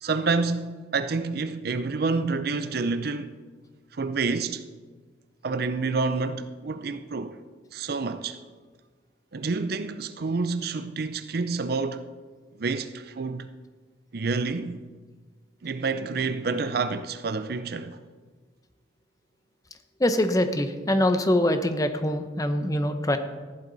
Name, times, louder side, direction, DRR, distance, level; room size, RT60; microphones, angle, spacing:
voice 1, 0.0-3.3 3.9-4.6 5.4-7.3 7.7-8.4 9.3-12.0 12.6-13.5 14.1-14.8 15.6-18.0, right 4 dB, 55° right, 0.5 m, -28 dB
voice 2, 20.0-23.2, left 1 dB, 20° left, 0.8 m, -24 dB
14.5 x 11.0 x 4.0 m
head